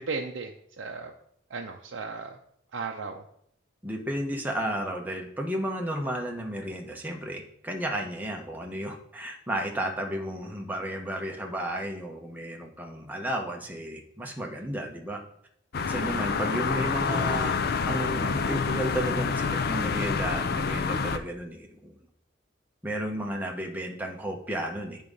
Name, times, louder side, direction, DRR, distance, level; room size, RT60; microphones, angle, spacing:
voice 1, 0.1-0.5 0.8-1.1 1.5-2.4 2.7-3.2, right 4 dB, 70° right, 1 dB, 0.5 m, -35 dB
voice 2, 3.8-15.2 15.7-17.5 17.9-22.0 22.8-25.0, right 1 dB, 10° right, 1 dB, 1.0 m, -33 dB
sound 1, 15.7-21.2, left 5 dB, 55° left, 0.5 m, -27 dB
8.5 x 3.6 x 5.3 m, 0.70 s
head